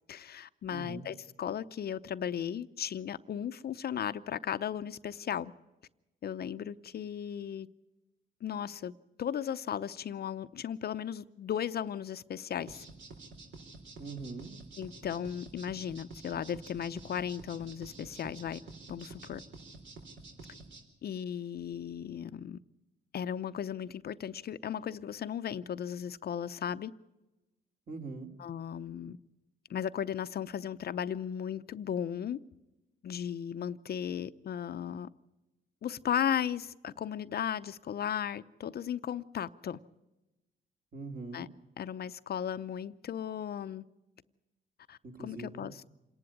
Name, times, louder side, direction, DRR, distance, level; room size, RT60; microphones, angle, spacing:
voice 1, 0.1-5.5 6.2-7.7 8.4-8.9 9.2-12.8 14.8-18.6 18.9-19.4 21.0-22.6 23.1-26.9 28.4-29.2 29.7-32.4 33.0-35.1 35.8-39.8 41.3-41.5 41.8-43.8 44.9-45.8, left 9 dB, 50° left, 0.6 m, -36 dB
voice 2, 0.7-1.0 14.0-14.5 27.9-28.3 40.9-41.5 45.0-45.7, right 3 dB, 45° right, 3.3 m, -42 dB
sound 1, 12.7-20.8, right 3 dB, 70° right, 4.3 m, -49 dB
27.0 x 11.0 x 9.8 m
cardioid pair, 90°, 20 cm